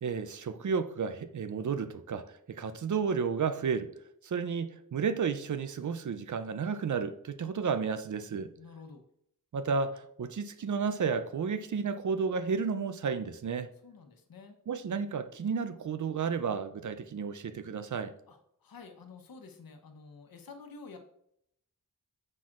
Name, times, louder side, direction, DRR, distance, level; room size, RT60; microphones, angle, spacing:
voice 1, 0.0-3.9 4.2-8.5 9.5-13.7 14.7-18.1, right 5 dB, 60° right, 0.6 m, -32 dB
voice 2, 8.6-9.0 13.8-14.6 18.3-21.0, left 4 dB, 80° left, 1.0 m, -50 dB
7.5 x 5.9 x 2.5 m
wide cardioid pair, 70°, 34 cm